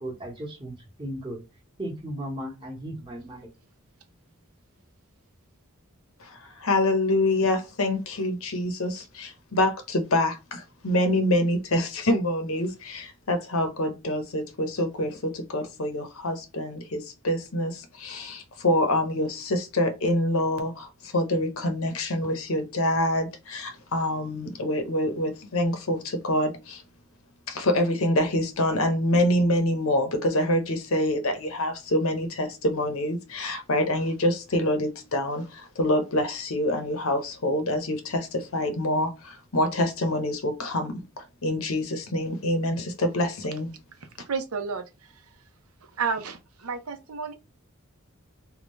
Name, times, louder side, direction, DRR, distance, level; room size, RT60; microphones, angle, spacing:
voice 1, 0.0-1.4 1.8-3.5, right 1 dB, 25° right, 1.2 m, -36 dB
voice 2, 6.2-26.8 27.5-43.7, left 1 dB, 80° left, 0.9 m, -26 dB
voice 3, 44.3-44.8 46.0-47.3, right 5 dB, 90° right, 0.7 m, -30 dB
3.6 x 2.4 x 3.1 m
head